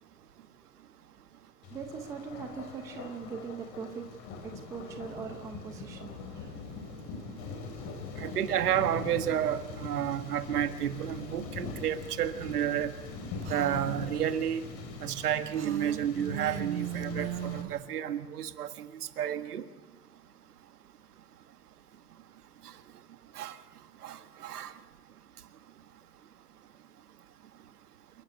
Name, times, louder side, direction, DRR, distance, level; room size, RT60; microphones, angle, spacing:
voice 1, 0.0-0.5 1.7-4.1 4.4-6.5, right 6 dB, 5° right, 0.7 m, -41 dB
Thunder, 1.6-17.6, left 4 dB, 30° left, 3.7 m, -42 dB
voice 2, 8.2-12.9 13.5-14.7 15.0-18.9 19.2-19.7 23.4-23.6 24.0-24.7, right 10 dB, 65° right, 1.9 m, -31 dB
Female speech woman speaking, 13.4-14.1 15.5-17.8, right 11 dB, 45° right, 1.4 m, -37 dB
28.0 x 12.0 x 9.4 m
hypercardioid pair, 150°, 49 cm